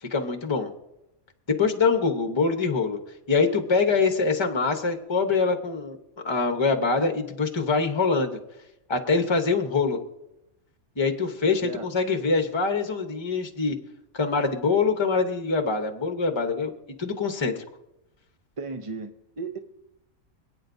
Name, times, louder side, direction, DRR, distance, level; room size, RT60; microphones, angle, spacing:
voice 1, 0.1-0.7 1.5-3.0 3.3-6.0 6.2-8.4 8.9-10.0 11.0-13.8 14.1-16.7 17.0-17.5, left 4 dB, 20° left, 6 dB, 0.9 m, -24 dB
voice 2, 18.6-19.6, right 4 dB, 50° right, 6 dB, 0.4 m, -35 dB
26.5 x 9.0 x 2.7 m, 0.90 s
omnidirectional pair, 1.5 m